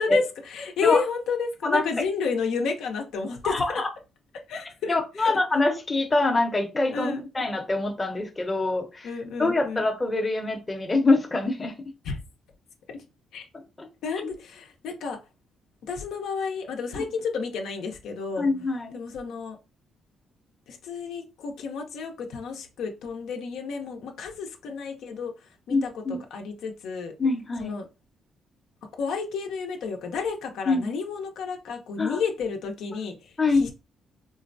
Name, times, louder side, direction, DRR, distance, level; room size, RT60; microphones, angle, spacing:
voice 1, 0.0-3.8 4.5-5.3 6.9-7.2 9.0-9.9 12.0-12.2 13.3-13.4 14.0-15.2 15.9-18.5 18.9-19.6 20.7-25.3 25.7-27.1 27.6-27.9 29.0-33.7, left 5 dB, 80° left, 0.5 m, -31 dB
voice 2, 3.4-3.9 4.9-9.1 9.4-11.7 13.8-13.9 18.4-19.0 25.7-26.2 27.2-27.7 30.7-30.9 32.0-32.2 33.4-33.6, left 2 dB, 20° left, 0.7 m, -24 dB
3.7 x 2.1 x 2.5 m
cardioid pair, 90°, 0 cm